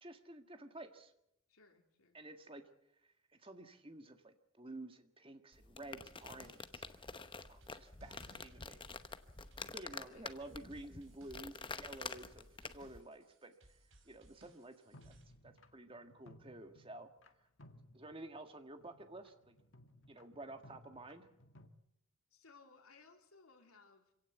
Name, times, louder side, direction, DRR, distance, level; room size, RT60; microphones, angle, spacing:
voice 1, 0.0-1.1 2.1-2.6 3.0-3.1 3.4-6.8 7.5-8.8 9.7-13.5 14.1-15.2 15.4-17.1 17.9-19.6 20.1-21.3, right 2 dB, 25° right, 7 dB, 1.7 m, -51 dB
voice 2, 1.5-2.2 10.0-10.3 22.3-24.1, left 4 dB, 80° left, 4 dB, 3.4 m, -63 dB
sound 1, 5.5-13.0, left 4 dB, 25° left, 0.9 m, -48 dB
sound 2, 6.1-15.2, right 1 dB, 60° right, 4.9 m, -65 dB
sound 3, 14.9-17.3 17.6-18.5 18.8-21.7, left 1 dB, 60° left, 1.8 m, -61 dB
25.5 x 17.0 x 8.1 m, 0.82 s
head